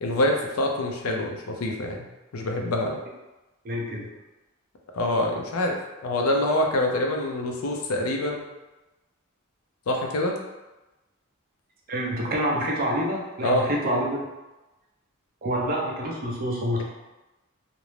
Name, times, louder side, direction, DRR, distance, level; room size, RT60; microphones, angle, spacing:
voice 1, 0.0-2.1 2.3-3.0 4.9-5.8 6.0-8.4 9.9-10.4 13.4-13.7, left 1 dB, 80° left, 2 dB, 0.5 m, -25 dB
voice 2, 3.6-4.1 11.9-14.2 15.4-16.8, equal, 45° right, -2 dB, 0.5 m, -27 dB
2.5 x 2.0 x 3.1 m, 1.1 s
head